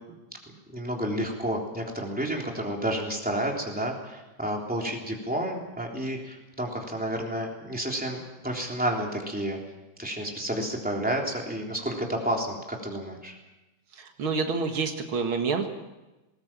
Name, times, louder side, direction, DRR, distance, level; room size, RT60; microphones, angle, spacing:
voice 1, 0.7-9.6 10.0-13.4, right 1 dB, 5° right, 0 dB, 3.4 m, -30 dB
voice 2, 14.0-15.7, right 4 dB, 90° right, 5 dB, 2.6 m, -28 dB
20.0 x 19.0 x 7.5 m, 1.1 s
omnidirectional pair, 2.2 m